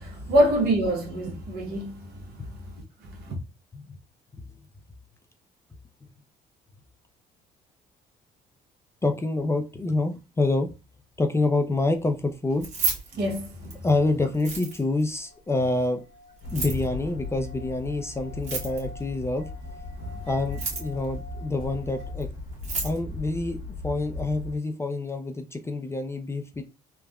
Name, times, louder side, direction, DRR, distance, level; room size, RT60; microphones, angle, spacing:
voice 1, 0.0-2.3 2.7-2.8 3.1-3.3 13.1-13.8 20.0-20.3, right 1 dB, 70° right, 1.0 m, -26 dB
voice 2, 9.0-10.7 11.2-12.7 13.8-16.0 16.5-19.5 20.3-22.3 22.8-26.6, left 2 dB, 15° left, 0.4 m, -27 dB
Keys jangling, 12.5-13.9 14.3-15.0 16.4-16.9 18.3-19.0 20.4-21.0 22.2-22.3 22.5-23.0, right 4 dB, 45° right, 1.3 m, -31 dB
sound 1, 13.7-22.1, left 3 dB, 25° right, 0.8 m, -50 dB
sound 2, 16.4-24.6, left 3 dB, 55° left, 1.1 m, -38 dB
3.4 x 2.1 x 2.3 m
cardioid pair, 110°, 17 cm